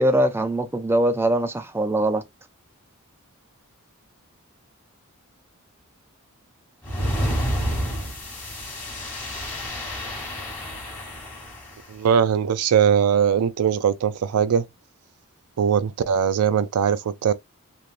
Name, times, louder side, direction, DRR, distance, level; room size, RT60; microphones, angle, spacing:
voice 1, 0.0-2.2, right 1 dB, 10° right, 0.3 m, -22 dB
sound 1, 6.8-11.7, equal, 10° left, 1.2 m, -29 dB
voice 2, 11.9-14.7 15.6-17.3, right 7 dB, 90° right, 0.4 m, -20 dB
3.2 x 2.6 x 2.5 m
head